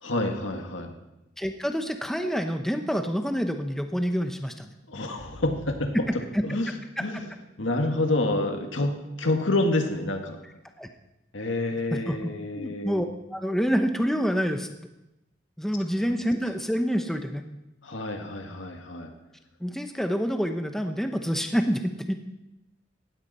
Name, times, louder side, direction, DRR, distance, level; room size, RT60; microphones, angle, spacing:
voice 1, 0.0-0.9 4.9-5.9 6.4-6.7 7.0-7.3 7.6-10.4 11.3-13.0 17.8-19.1, left 2 dB, 90° left, 4 dB, 2.0 m, -28 dB
voice 2, 1.4-4.7 5.9-6.0 6.3-6.4 7.0-7.1 10.8-10.9 11.9-13.1 13.3-14.7 15.6-17.4 19.6-22.1, equal, ahead, 6 dB, 0.8 m, -27 dB
17.5 x 13.0 x 4.3 m, 0.93 s
head